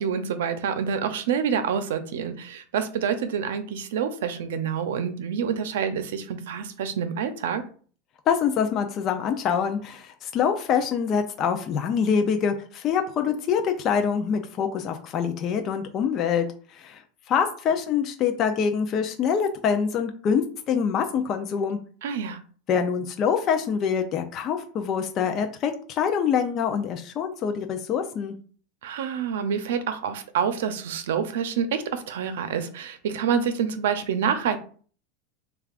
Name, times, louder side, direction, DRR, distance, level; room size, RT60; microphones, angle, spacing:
voice 1, 0.0-7.6 22.0-22.4 28.8-34.6, right 7 dB, 85° right, 9 dB, 0.6 m, -27 dB
voice 2, 8.3-16.5 16.7-17.0 17.3-21.8 22.7-28.4, left 7 dB, 35° left, 5 dB, 0.4 m, -25 dB
6.5 x 2.4 x 2.4 m, 0.43 s
supercardioid pair, 145°, 0 cm